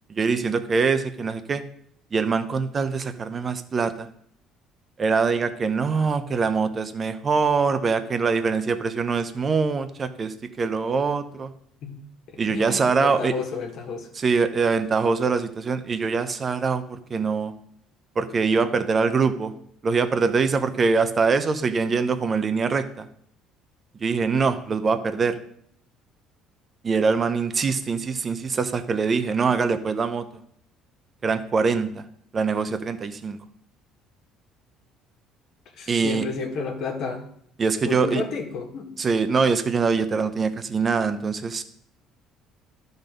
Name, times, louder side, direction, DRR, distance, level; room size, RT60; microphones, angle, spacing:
voice 1, 0.1-1.6 2.1-4.1 5.0-11.5 12.4-13.3 14.2-17.5 18.2-19.5 19.8-23.1 24.0-25.4 26.8-30.3 31.2-32.0 32.3-33.4 35.9-36.2 37.6-38.2 39.0-41.6, right 5 dB, 35° right, 10 dB, 0.9 m, -23 dB
voice 2, 12.3-14.1 35.8-37.2 37.8-38.9, left 5 dB, 65° left, 2 dB, 1.8 m, -31 dB
12.0 x 4.0 x 5.3 m, 0.68 s
supercardioid pair, 85°, 0 cm